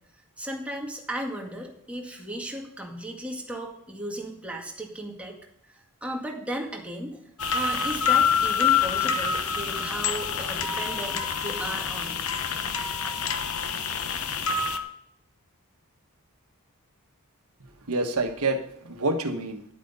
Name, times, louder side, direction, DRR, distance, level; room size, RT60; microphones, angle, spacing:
voice 1, 0.4-5.4 5.7-12.2, equal, 5° right, 0 dB, 2.0 m, -35 dB
sound 1, 7.4-14.8, left 6 dB, 70° left, 1.1 m, -26 dB
voice 2, 17.6-19.7, right 2 dB, 75° right, 6 dB, 1.4 m, -28 dB
11.0 x 8.3 x 5.5 m, 0.73 s
head